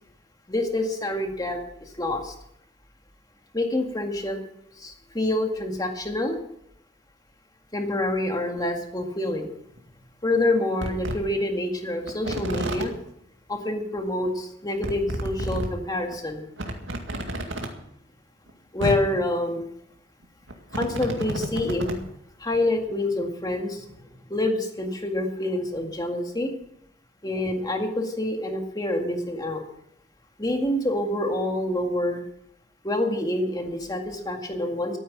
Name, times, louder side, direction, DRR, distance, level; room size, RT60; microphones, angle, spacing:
voice 1, 0.5-1.6 2.0-2.3 3.5-4.4 4.8-6.4 7.7-9.5 10.2-12.9 13.5-16.4 18.7-19.7 20.7-22.0 22.4-23.8 24.3-26.5 27.2-29.6 30.4-32.2 32.8-35.0, left 1 dB, 20° left, 3 dB, 1.9 m, -27 dB
sound 1, 8.6-8.7 9.8-9.9 10.3-10.4 10.8-11.2 12.1-12.8 14.0-14.1 14.3-14.4 14.8-15.7 16.1-16.2 16.6-17.7 18.5-18.6 18.8-19.0 20.2-22.0 22.5-22.6, right 1 dB, 75° right, 2.1 m, -30 dB
13.5 x 9.3 x 7.4 m, 0.76 s
head